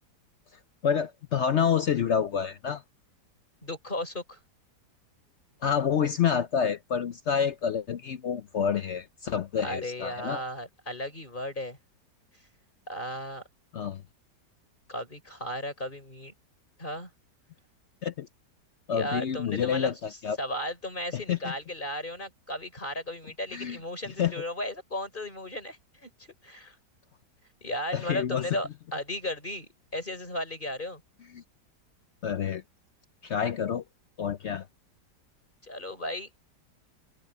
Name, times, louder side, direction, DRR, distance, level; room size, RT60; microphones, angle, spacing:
voice 1, 0.8-2.8 5.6-10.4 13.7-14.0 18.0-18.3 18.9-20.4 21.1-21.5 23.5-23.8 24.2-24.3 27.9-28.4 31.3-31.4 32.2-32.6 33.2-33.8 34.2-34.7, left 7 dB, 65° left, 0.7 m, -28 dB
voice 2, 3.6-4.4 9.6-11.8 12.9-13.4 14.9-16.3 16.8-17.1 18.9-20.0 20.4-26.1 26.4-26.7 27.6-31.0 35.6-36.3, left 1 dB, 25° left, 4.4 m, -35 dB
omnidirectional pair, 1.9 m